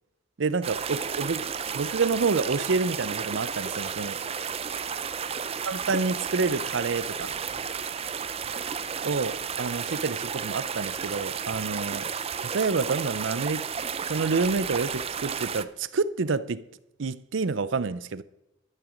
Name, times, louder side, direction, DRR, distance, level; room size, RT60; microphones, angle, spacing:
voice 1, 0.4-4.2 5.7-7.4 9.0-12.1 12.4-13.7 14.0-16.6 17.0-18.2, right 4 dB, 75° right, 0.6 m, -28 dB
sound 1, 0.6-15.6, right 7 dB, 30° right, 0.5 m, -32 dB
13.0 x 9.0 x 5.2 m
head